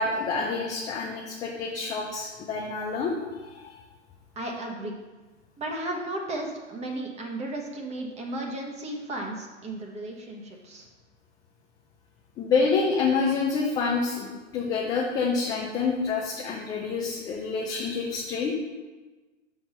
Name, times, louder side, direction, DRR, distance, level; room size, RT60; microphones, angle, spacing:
voice 1, 0.0-3.1 3.6-3.7 12.4-18.5, left 4 dB, 10° left, -2 dB, 0.4 m, -27 dB
voice 2, 4.3-5.0 5.6-10.9, right 1 dB, 15° right, 1 dB, 1.3 m, -34 dB
6.3 x 5.7 x 5.2 m, 1.3 s
hypercardioid pair, 130°, 37 cm